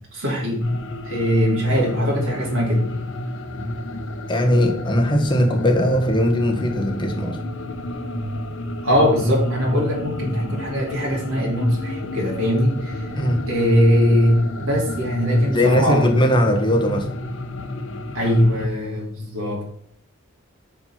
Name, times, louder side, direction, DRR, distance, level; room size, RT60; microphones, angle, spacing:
voice 1, 0.1-0.6 1.0-2.9 8.8-12.9 13.5-16.1 18.1-19.7, equal, 90° right, -3 dB, 2.6 m, -20 dB
sound 1, 0.6-18.7, left 1 dB, 65° left, 0.9 m, -31 dB
voice 2, 4.3-7.4 13.1-13.5 15.5-17.1, equal, 25° left, 3 dB, 1.1 m, -19 dB
5.8 x 5.3 x 5.6 m, 0.69 s
head